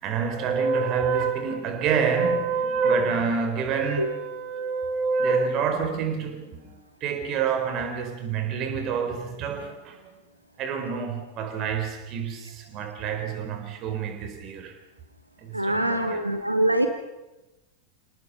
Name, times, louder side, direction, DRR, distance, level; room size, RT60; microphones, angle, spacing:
voice 1, 0.0-10.1 10.6-14.7 15.4-16.2 16.6-16.8, right 5 dB, 35° right, 4.0 m, -27 dB
voice 2, 15.5-16.9, right 1 dB, 85° right, 1.2 m, -24 dB
28.0 x 18.5 x 5.5 m
figure-of-eight pair, 90°, 0 cm